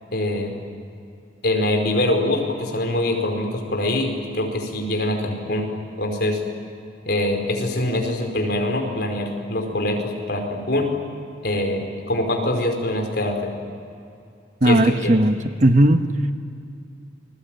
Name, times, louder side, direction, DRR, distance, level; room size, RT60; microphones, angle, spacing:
voice 1, 0.1-0.5 1.4-5.7 6.0-6.4 7.0-10.9 11.4-13.5 14.6-15.1, left 1 dB, 55° left, 3 dB, 4.8 m, -24 dB
voice 2, 14.6-16.1, right 1 dB, 40° right, 7 dB, 1.2 m, -17 dB
29.5 x 21.5 x 9.1 m, 2.6 s
head